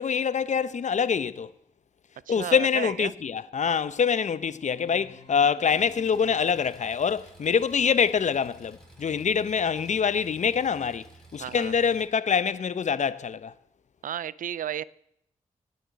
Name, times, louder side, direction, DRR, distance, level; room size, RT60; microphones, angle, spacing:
voice 1, 0.0-1.5 2.3-11.1 11.3-13.5, left 6 dB, 55° left, 0.7 m, -25 dB
voice 2, 2.3-3.1 11.4-11.7 14.0-14.8, right 10 dB, 70° right, 0.5 m, -33 dB
sound 1, 4.5-7.2, left 3 dB, 40° left, 2.5 m, -52 dB
Engine, 5.6-12.0, right 2 dB, 5° left, 6.5 m, -53 dB
18.5 x 6.8 x 8.3 m
supercardioid pair, 40°, 14 cm